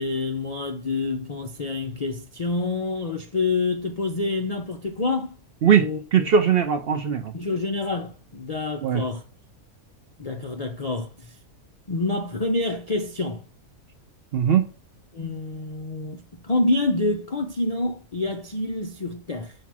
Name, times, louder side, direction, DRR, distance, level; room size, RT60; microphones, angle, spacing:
voice 1, 0.0-5.4 5.7-6.3 7.3-9.2 10.2-11.4 11.9-13.4 15.1-19.5, left 2 dB, 85° left, 0.3 m, -27 dB
voice 2, 5.6-7.3 8.8-9.0 14.3-14.6, right 7 dB, 65° right, 0.6 m, -20 dB
7.2 x 2.9 x 5.9 m
omnidirectional pair, 1.5 m